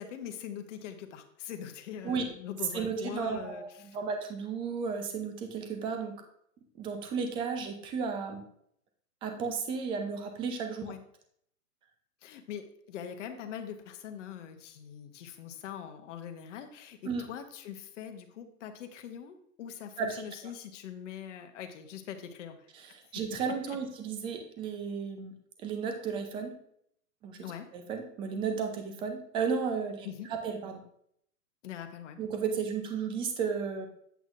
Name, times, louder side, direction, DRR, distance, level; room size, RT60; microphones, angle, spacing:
voice 1, 0.0-4.0 10.8-11.0 12.2-22.7 23.1-23.2 23.7-23.8 27.4-27.7 30.0-30.3 31.6-32.2, left 9 dB, 50° left, 6 dB, 1.0 m, -42 dB
voice 2, 2.7-6.1 6.8-8.4 9.2-10.9 17.0-17.3 20.0-20.2 22.7-25.3 25.6-26.6 27.2-27.4 27.7-30.8 32.2-33.9, right 5 dB, 10° right, 5 dB, 0.5 m, -34 dB
8.1 x 7.8 x 2.5 m, 0.69 s
hypercardioid pair, 135°, 45 cm